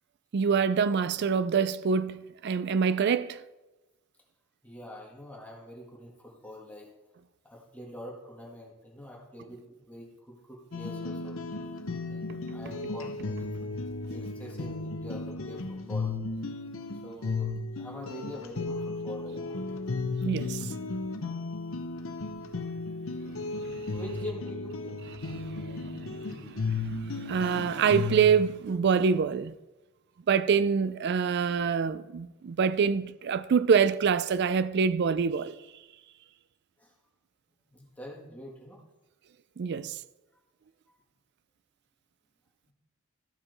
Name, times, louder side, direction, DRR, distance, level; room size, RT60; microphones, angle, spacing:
voice 1, 0.3-3.4 20.2-20.7 23.7-23.9 25.2-26.8 27.1-29.5 30.3-35.6 39.6-39.9, right 6 dB, 55° right, 0.4 m, -26 dB
voice 2, 4.6-6.9 7.5-11.3 12.1-13.8 14.1-16.1 17.0-19.6 23.9-25.0 36.8-36.9 37.7-38.8, equal, 10° left, 1.8 m, -45 dB
sound 1, 10.7-28.3, left 3 dB, 70° left, 0.8 m, -35 dB
14.0 x 5.8 x 4.0 m
head